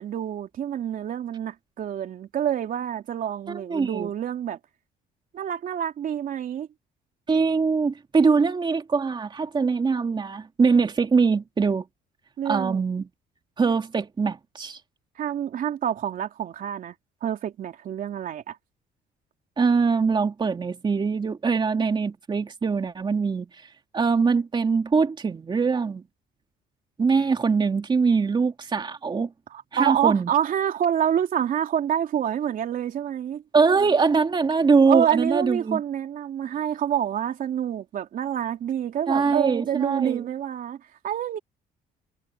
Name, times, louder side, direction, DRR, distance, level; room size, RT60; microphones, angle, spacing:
voice 1, 0.0-4.6 5.3-6.7 12.4-12.8 15.2-16.9 17.2-18.6 29.5-33.4 34.9-40.8 41.0-41.4, right 9 dB, 55° right, 3.2 m, -27 dB
voice 2, 3.5-4.1 7.3-11.8 12.4-13.1 13.6-14.8 19.6-23.6 23.9-26.0 27.0-29.3 29.7-30.3 33.5-35.8 39.1-40.3, right 5 dB, 25° right, 2.7 m, -22 dB
cardioid pair, 110°, 17 cm